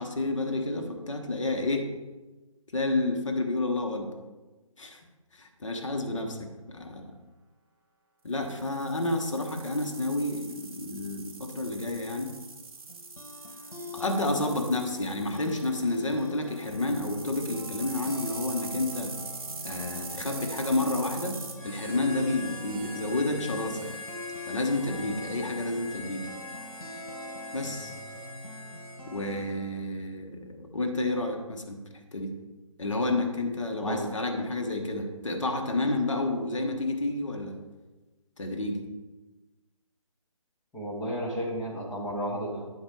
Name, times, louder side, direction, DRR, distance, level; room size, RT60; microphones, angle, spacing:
voice 1, 0.0-1.9 2.7-4.1 4.8-5.0 5.3-6.4 6.7-7.0 8.2-12.3 13.9-19.1 19.6-21.4 21.6-24.0 24.5-26.3 27.5-27.9 29.1-31.8 32.1-32.3 32.8-37.6 38.4-38.8, left 2 dB, 60° left, 3 dB, 1.3 m, -30 dB
sound 1, 8.4-21.5, right 4 dB, 45° right, 1.3 m, -43 dB
sound 2, 12.9-29.8, left 2 dB, 80° left, 1.6 m, -44 dB
Harmonica, 21.5-29.6, left 2 dB, 20° right, 1.0 m, -42 dB
voice 2, 40.7-42.7, equal, 5° left, -7 dB, 0.4 m, -32 dB
9.4 x 4.6 x 4.8 m, 1.2 s
figure-of-eight pair, 145°, 18 cm